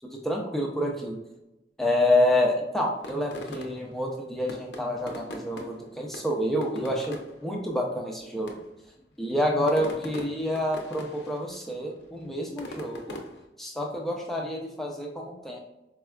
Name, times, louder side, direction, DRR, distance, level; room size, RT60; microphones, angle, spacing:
voice 1, 0.0-1.2 1.8-8.6 9.2-13.2 13.6-15.6, left 1 dB, ahead, -1 dB, 0.3 m, -28 dB
sound 1, 3.0-4.0 4.4-5.9 6.1-7.4 8.1-8.2 8.4-8.8 9.5-11.4 11.7-13.4, left 1 dB, 80° left, 0.5 m, -41 dB
4.2 x 2.3 x 2.2 m, 0.95 s
head